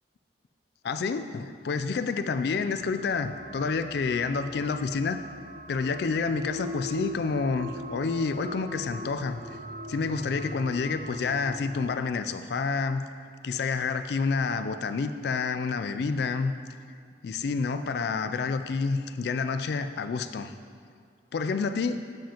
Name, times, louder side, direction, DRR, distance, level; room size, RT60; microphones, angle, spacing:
voice 1, 0.8-5.2 5.7-9.6 9.9-13.0 13.4-16.5 17.2-20.5 21.3-22.0, left 4 dB, 55° left, 9 dB, 0.3 m, -29 dB
sound 1, 2.5-11.9, equal, 40° right, 0.4 m, -41 dB
7.5 x 7.5 x 2.9 m, 2.1 s
head